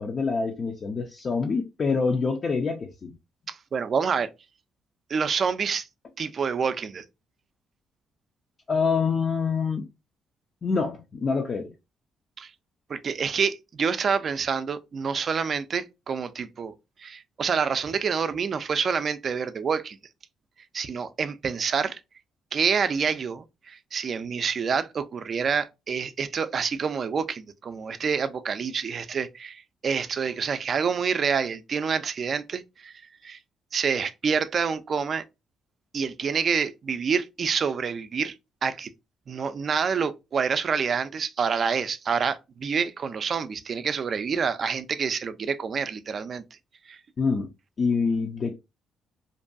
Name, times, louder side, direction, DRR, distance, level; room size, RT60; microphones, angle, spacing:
voice 1, 0.0-3.1 8.7-9.8 10.6-11.7 47.2-47.5 47.8-48.6, left 5 dB, 45° left, 0.4 m, -26 dB
voice 2, 3.5-4.3 5.1-5.9 6.2-7.0 12.4-12.5 12.9-20.0 20.7-22.0 22.5-33.4 33.7-35.2 35.9-38.3 38.6-38.9 39.3-46.4 46.9-47.0, right 6 dB, 50° right, 0.3 m, -27 dB
2.6 x 2.2 x 2.5 m
cardioid pair, 90°, 0 cm